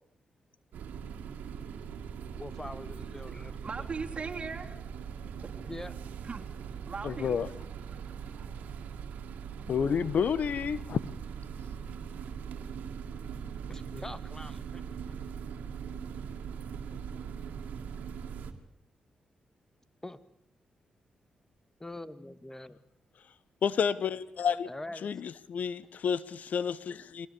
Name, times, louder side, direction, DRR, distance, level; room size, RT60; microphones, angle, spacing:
sound 1, 0.7-18.5, right 7 dB, 80° right, 2.3 m, -41 dB
voice 1, 2.3-3.9 5.6-5.9 13.7-14.8 16.9-17.0 20.0-20.2 21.8-22.8 24.7-25.1, left 1 dB, 15° left, 15 dB, 1.9 m, -43 dB
voice 2, 3.6-4.8 5.2-5.7 6.2-6.4 6.9-7.5 7.9-8.0 8.4-8.5 9.8-10.4, right 4 dB, 45° right, 2 dB, 3.5 m, -40 dB
voice 3, 7.0-7.5 9.7-11.0 23.6-24.7 25.0-27.3, left 7 dB, 65° left, 19 dB, 1.1 m, -30 dB
23.5 x 18.0 x 8.6 m, 0.71 s
supercardioid pair, 50°, 3 cm